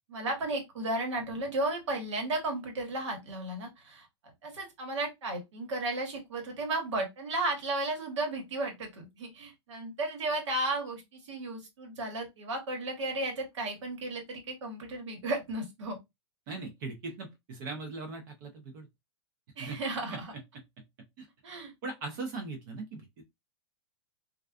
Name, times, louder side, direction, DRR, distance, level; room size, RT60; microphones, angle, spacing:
voice 1, 0.0-4.1 4.4-16.0 19.6-20.3 21.4-21.7, right 2 dB, 85° right, 1.2 m, -34 dB
voice 2, 16.5-18.9 19.6-19.8 20.1-20.2 21.2-21.3 21.8-23.0, right 3 dB, 45° right, 0.6 m, -39 dB
2.4 x 2.3 x 2.3 m
supercardioid pair, 155°, 15 cm